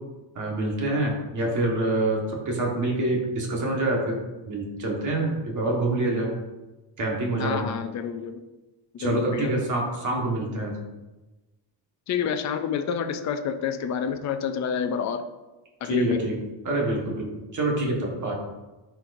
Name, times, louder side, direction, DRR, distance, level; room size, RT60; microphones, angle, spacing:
voice 1, 0.3-4.2 4.5-6.3 7.0-7.7 9.0-10.7 15.8-16.3 16.6-17.2 17.5-18.3, right 2 dB, 40° right, -1 dB, 1.6 m, -26 dB
voice 2, 7.4-8.4 8.9-9.5 12.1-15.2 15.8-16.2, left 7 dB, 40° left, 7 dB, 0.4 m, -28 dB
10.5 x 4.6 x 2.6 m, 1.1 s
cardioid pair, 170°, 45 cm